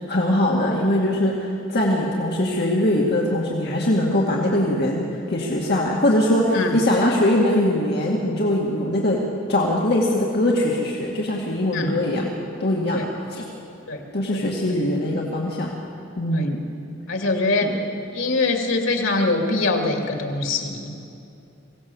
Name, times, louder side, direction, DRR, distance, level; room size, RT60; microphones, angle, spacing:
voice 1, 0.1-9.2 9.5-12.3 12.6-13.0 13.3-13.4 14.1-15.7 16.2-16.6 17.6-17.8, left 1 dB, 55° left, -2 dB, 2.1 m, -21 dB
voice 2, 17.1-17.7 18.1-20.9, left 3 dB, 85° left, 3 dB, 2.5 m, -23 dB
24.0 x 17.0 x 7.2 m, 2.7 s
head